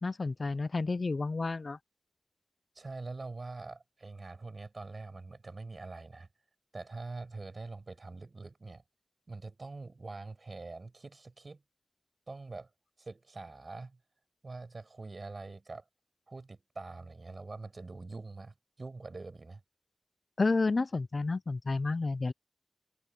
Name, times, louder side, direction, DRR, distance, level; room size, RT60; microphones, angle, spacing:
voice 1, 0.0-1.8 20.4-22.3, left 3 dB, 85° left, 0.4 m, -30 dB
voice 2, 2.7-6.3 6.7-8.8 9.3-11.6 12.3-12.7 13.0-14.0 14.4-15.8 16.3-19.6, right 3 dB, 80° right, 8.0 m, -44 dB
wide cardioid pair, 50°, 0 cm